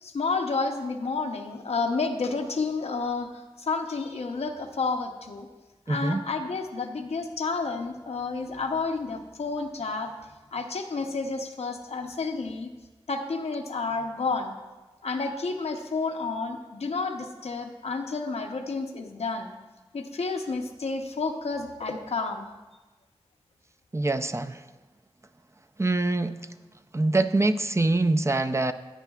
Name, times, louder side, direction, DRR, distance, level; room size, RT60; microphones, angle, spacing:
voice 1, 0.0-3.3 3.6-5.5 5.9-10.1 10.5-12.7 13.1-14.6 15.0-19.5 19.9-22.5, left 4 dB, 90° left, 4 dB, 0.7 m, -30 dB
voice 2, 5.9-6.2 23.9-24.7 25.8-26.4 26.9-28.7, right 2 dB, 25° right, 9 dB, 0.4 m, -24 dB
15.0 x 9.0 x 2.3 m, 1.2 s
wide cardioid pair, 50°, 11 cm